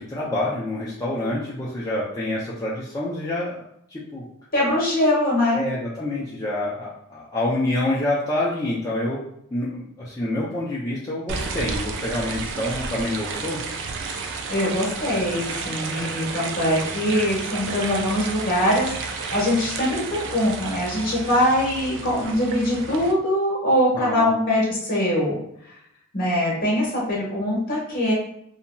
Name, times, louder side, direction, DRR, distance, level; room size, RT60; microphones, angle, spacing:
voice 1, 0.0-3.6 3.9-4.2 5.5-9.2 9.5-13.6 23.9-24.3, left 1 dB, 15° left, -8 dB, 0.4 m, -27 dB
voice 2, 4.5-5.6 14.5-25.4 26.1-28.1, left 1 dB, 40° left, -4 dB, 1.1 m, -22 dB
sound 1, 11.3-23.1, right 4 dB, 55° right, 0.3 m, -32 dB
2.8 x 2.7 x 2.2 m, 0.73 s
head